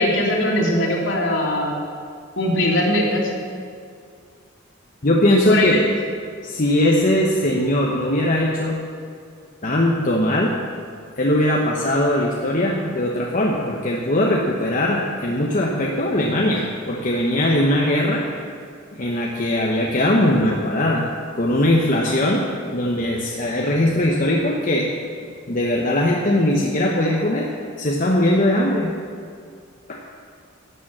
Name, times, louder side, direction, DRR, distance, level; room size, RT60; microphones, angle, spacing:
voice 1, 0.0-1.8 2.4-3.3 5.5-5.8, left 1 dB, 65° left, -2 dB, 3.0 m, -20 dB
voice 2, 5.0-5.8 6.4-8.8 9.6-10.5 11.2-18.3 18.9-21.1 21.3-24.9 25.5-27.5 27.8-28.9 29.9-30.0, left 1 dB, 40° left, -1 dB, 1.1 m, -20 dB
12.5 x 9.2 x 7.5 m, 2.3 s
head